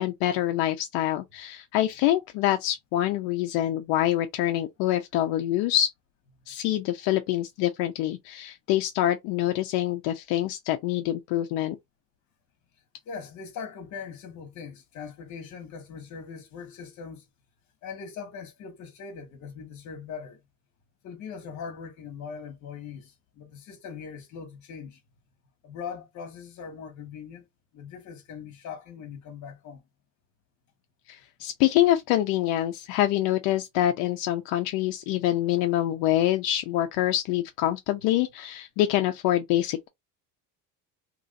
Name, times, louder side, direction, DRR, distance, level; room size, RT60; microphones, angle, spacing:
voice 1, 0.0-5.9 6.5-11.8 31.1-39.9, left 13 dB, 80° left, 0.6 m, -25 dB
voice 2, 13.0-17.2 17.8-20.4 21.0-25.0 25.6-27.4 27.7-29.8, left 6 dB, 50° left, 1.3 m, -40 dB
3.0 x 2.5 x 4.0 m
cardioid pair, 165°, 37 cm